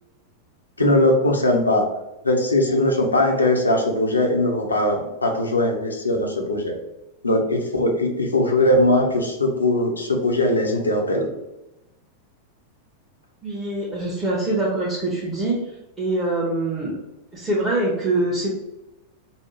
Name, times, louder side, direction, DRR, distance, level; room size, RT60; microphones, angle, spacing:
voice 1, 0.8-1.8 2.2-6.7 7.2-11.3, left 1 dB, 80° left, 1 dB, 0.8 m, -20 dB
voice 2, 13.4-15.6 16.0-16.9 17.3-18.5, right 2 dB, 15° right, -7 dB, 1.1 m, -24 dB
5.4 x 2.3 x 3.2 m, 0.93 s
figure-of-eight pair, 90°, 0 cm